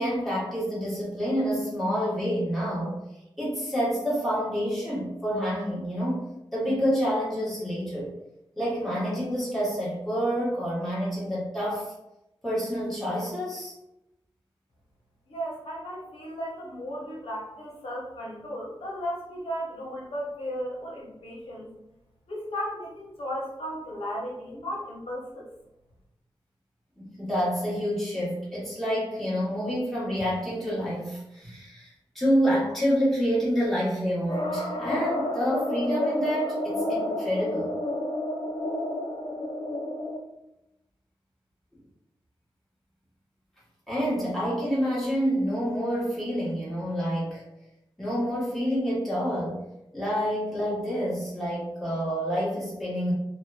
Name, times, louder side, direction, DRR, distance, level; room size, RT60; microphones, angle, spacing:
voice 1, 0.0-3.0 3.4-8.1 8.6-11.9 12.4-13.7 27.0-37.7 43.9-47.4 48.0-49.6 49.9-53.1, equal, ahead, -9 dB, 1.1 m, -28 dB
voice 2, 15.3-21.7 22.3-25.5, equal, 75° left, -4 dB, 0.8 m, -35 dB
sound 1, 34.3-40.2, left 1 dB, 50° left, 0.4 m, -30 dB
2.9 x 2.1 x 2.3 m, 0.89 s
wide cardioid pair, 120°, 10 cm